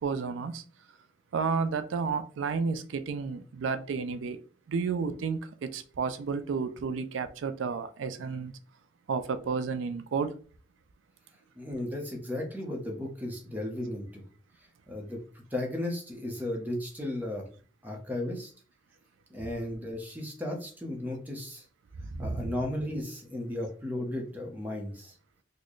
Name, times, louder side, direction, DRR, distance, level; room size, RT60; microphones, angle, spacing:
voice 1, 0.0-0.6 1.3-4.4 4.7-8.5 9.1-10.3 19.4-19.5 22.0-22.5, right 5 dB, 90° right, 0.4 m, -31 dB
voice 2, 11.6-14.2 14.9-17.5 17.8-18.5 19.3-21.7 22.2-25.1, left 1 dB, 10° right, 0.7 m, -35 dB
4.1 x 2.1 x 3.1 m
head